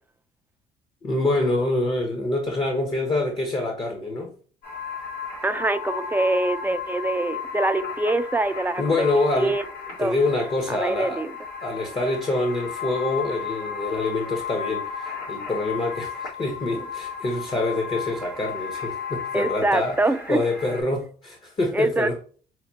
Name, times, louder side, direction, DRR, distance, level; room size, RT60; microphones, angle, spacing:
voice 1, 1.0-4.3 8.8-9.5 10.0-11.2 11.6-20.0 20.3-22.2, left 2 dB, 30° left, 0.8 m, -26 dB
sound 1, 4.6-20.8, left 7 dB, 65° left, 1.6 m, -34 dB
voice 2, 5.4-9.0 9.4-9.6 10.0-10.2 10.7-11.3 19.3-20.4 21.7-22.2, right 2 dB, 10° right, 0.4 m, -24 dB
5.8 x 2.2 x 2.8 m
cardioid pair, 110°, 17 cm